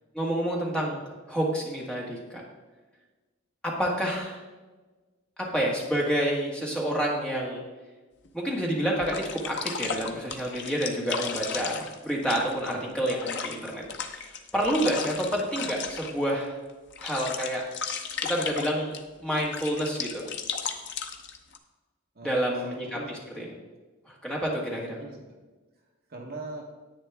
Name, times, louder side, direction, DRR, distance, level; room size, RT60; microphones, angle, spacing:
voice 1, 0.1-1.0 1.3-2.4 3.6-4.4 5.5-7.6 8.3-16.6 17.0-17.6 18.2-20.2 22.2-23.5 24.1-25.0, equal, 5° left, -3 dB, 1.6 m, -29 dB
sound 1, 8.2-8.3 9.0-16.3 16.7-19.0 19.4-21.6, left 6 dB, 55° left, 0.8 m, -35 dB
voice 2, 12.7-13.1 22.1-23.1 24.7-25.4 26.1-26.6, right 2 dB, 45° right, 1 dB, 1.2 m, -41 dB
10.0 x 8.8 x 3.5 m, 1.3 s
head